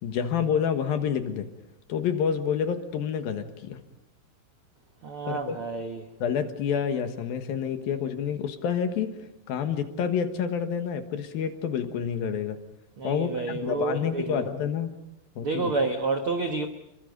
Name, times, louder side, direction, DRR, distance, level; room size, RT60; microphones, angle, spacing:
voice 1, 0.0-1.5 1.9-3.8 5.2-5.6 6.2-12.6 13.0-14.9 15.4-15.7, left 7 dB, 65° left, 7 dB, 3.1 m, -28 dB
voice 2, 5.0-6.1 13.0-14.4 15.4-16.7, right 3 dB, 65° right, 5 dB, 1.3 m, -29 dB
29.5 x 23.5 x 5.3 m, 0.86 s
omnidirectional pair, 4.7 m